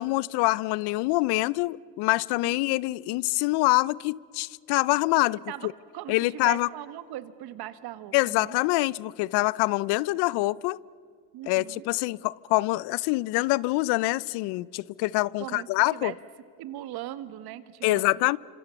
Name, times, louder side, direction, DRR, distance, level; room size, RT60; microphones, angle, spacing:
voice 1, 0.0-5.7 6.1-6.7 8.1-10.8 11.5-16.1 17.8-18.4, left 21 dB, 70° left, 0.6 m, -25 dB
voice 2, 2.4-2.8 5.5-8.6 11.3-11.8 15.4-16.2 16.6-18.3, right 13 dB, 60° right, 1.6 m, -40 dB
26.5 x 26.0 x 7.1 m
supercardioid pair, 110°, 42 cm